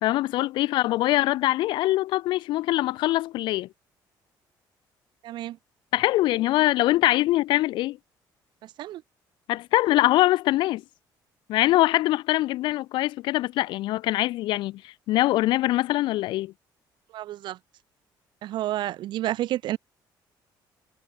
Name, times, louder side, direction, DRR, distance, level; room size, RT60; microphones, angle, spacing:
voice 1, 0.0-3.7 5.9-8.0 9.5-10.8 11.5-16.5, left 16 dB, 85° left, 1.2 m, -23 dB
voice 2, 5.2-5.6 8.6-9.0 17.1-17.6 18.4-19.8, right 14 dB, 75° right, 4.8 m, -30 dB
cardioid pair, 125°, 8 cm